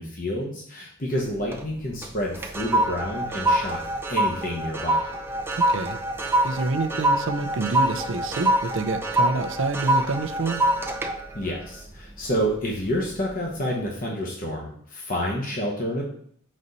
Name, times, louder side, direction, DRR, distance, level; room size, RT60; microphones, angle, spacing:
voice 1, 0.0-3.8 4.1-5.1 11.3-16.0, equal, 40° left, -2 dB, 0.9 m, -29 dB
sound 1, 1.2-1.7 2.0-12.6 13.0-13.3, right 1 dB, 10° right, 0.4 m, -25 dB
voice 2, 5.7-6.0 6.4-10.6, right 3 dB, 60° right, 8 dB, 0.5 m, -27 dB
6.4 x 4.2 x 4.0 m, 0.63 s
head